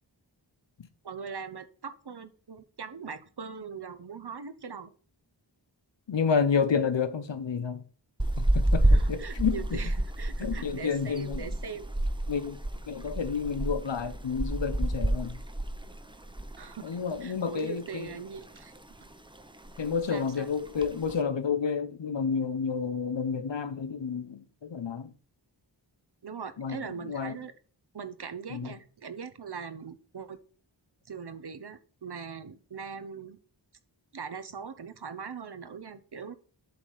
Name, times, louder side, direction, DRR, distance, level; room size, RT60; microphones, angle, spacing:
voice 1, 1.0-4.9 8.9-11.9 16.6-16.9 17.2-19.1 20.1-20.5 26.2-27.5 27.9-30.4 31.1-33.4 34.1-36.3, right 6 dB, 60° right, 0.9 m, -41 dB
voice 2, 6.1-7.8 8.4-9.8 10.4-11.5 12.3-12.6 12.9-15.4 16.8-18.1 19.8-25.1 26.6-27.4 28.5-28.7, left 6 dB, 75° left, 0.9 m, -30 dB
sound 1, 8.2-16.7 17.0-17.2 17.6-18.4 18.7-19.1 19.4-19.5 19.6-20.1 20.6-21.1, right 1 dB, 10° right, 0.7 m, -29 dB
7.8 x 3.6 x 6.5 m
wide cardioid pair, 55°, 44 cm